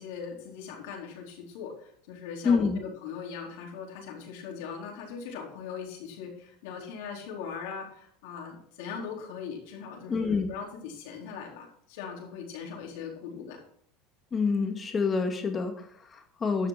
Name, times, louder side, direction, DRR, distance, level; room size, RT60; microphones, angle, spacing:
voice 1, 0.0-13.6, left 6 dB, 75° left, -1 dB, 4.1 m, -40 dB
voice 2, 2.4-2.8 10.1-10.5 14.3-16.7, left 5 dB, 25° left, 4 dB, 2.2 m, -27 dB
12.0 x 6.4 x 6.0 m, 0.64 s
supercardioid pair, 120°, 0 cm